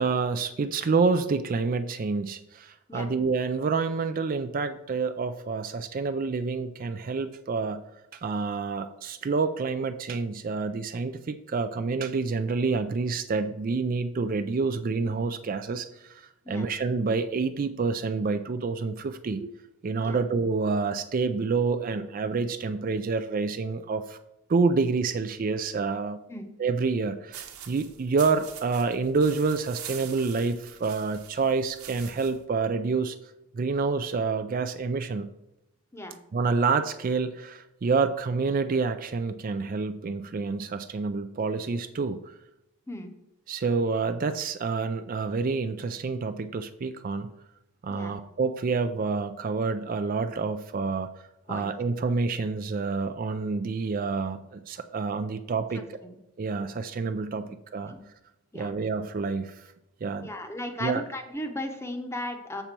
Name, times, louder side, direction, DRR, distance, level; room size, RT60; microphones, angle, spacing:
voice 1, 0.0-7.8 8.1-19.5 19.8-24.2 24.5-26.2 26.6-33.2 33.5-35.3 36.3-42.3 43.5-47.3 47.8-51.1 51.5-56.0 56.4-57.9 58.5-59.6 60.0-60.3 60.8-61.0, right 4 dB, 40° right, 9 dB, 0.3 m, -28 dB
sound 1, 27.3-32.4, right 9 dB, 80° right, 1.1 m, -44 dB
voice 2, 55.7-56.2 57.9-58.0 58.5-58.7 60.2-62.6, left 1 dB, 10° left, 6 dB, 0.8 m, -36 dB
7.1 x 6.7 x 4.4 m, 0.87 s
head